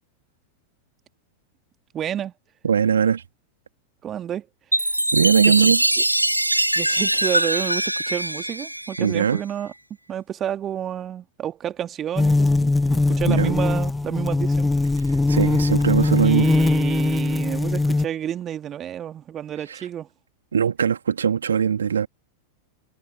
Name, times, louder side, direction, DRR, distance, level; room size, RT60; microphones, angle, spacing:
voice 1, 1.9-2.3 4.0-4.5 5.4-5.7 6.7-9.7 10.1-14.7 16.2-20.1, right 10 dB, 25° right, 2.1 m, -30 dB
voice 2, 2.6-3.2 5.1-5.8 9.0-9.4 13.3-13.5 15.3-16.5 19.7-19.8 20.5-22.1, right 7 dB, 70° right, 2.5 m, -20 dB
Chime, 4.7-9.4, right 1 dB, 85° right, 0.5 m, -22 dB
sound 1, 12.2-18.1, left 2 dB, 10° left, 0.6 m, -20 dB
figure-of-eight pair, 90°, 0 cm